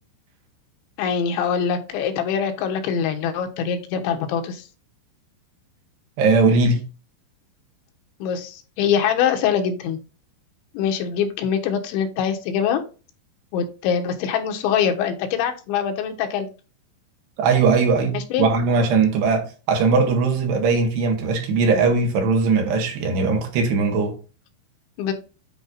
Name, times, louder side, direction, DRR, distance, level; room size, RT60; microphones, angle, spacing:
voice 1, 1.0-4.7 8.2-10.0 10.8-12.8 13.5-16.5 18.1-18.5 25.0-25.1, left 7 dB, 80° left, 3.5 m, -23 dB
voice 2, 6.2-6.8 17.4-24.2, right 4 dB, 70° right, 3.7 m, -19 dB
10.0 x 4.7 x 4.0 m
omnidirectional pair, 5.3 m